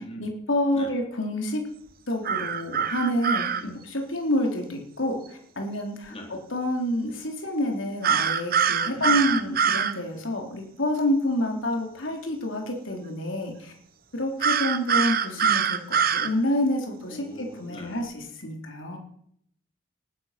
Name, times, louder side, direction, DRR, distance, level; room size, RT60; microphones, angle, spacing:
voice 1, 0.2-1.6 2.1-6.1 6.5-13.7 14.1-19.0, left 1 dB, 75° left, 2 dB, 4.0 m, -28 dB
sound 1, 2.3-3.6 8.0-9.9 14.4-16.3, right 7 dB, 45° right, 1.1 m, -23 dB
voice 2, 8.8-9.3 17.1-18.1 18.9-19.0, equal, 30° left, 1 dB, 4.1 m, -42 dB
20.0 x 12.0 x 6.1 m, 0.69 s
head